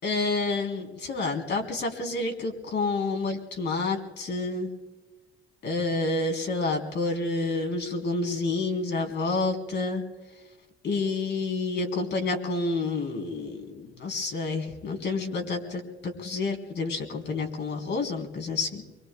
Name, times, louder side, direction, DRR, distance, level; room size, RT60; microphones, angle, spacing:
voice 1, 0.0-4.7 5.6-10.0 10.8-18.8, left 3 dB, 60° left, 3 dB, 3.6 m, -29 dB
25.5 x 23.0 x 2.3 m, 1.1 s
cardioid pair, 90°, 20 cm